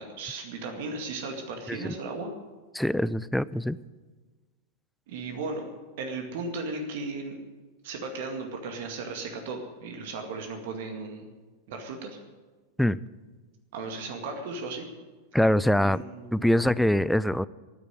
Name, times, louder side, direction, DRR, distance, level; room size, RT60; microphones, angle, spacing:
voice 1, 0.0-2.3 5.1-5.6 6.0-7.4 7.8-11.3 11.7-12.2 13.7-14.8 15.8-16.5, right 3 dB, 50° right, 4 dB, 2.1 m, -36 dB
voice 2, 2.7-3.8 12.8-13.0 15.3-16.0 16.3-17.5, left 1 dB, ahead, 19 dB, 0.4 m, -24 dB
13.5 x 10.0 x 9.1 m, 1.3 s
figure-of-eight pair, 90°, 0 cm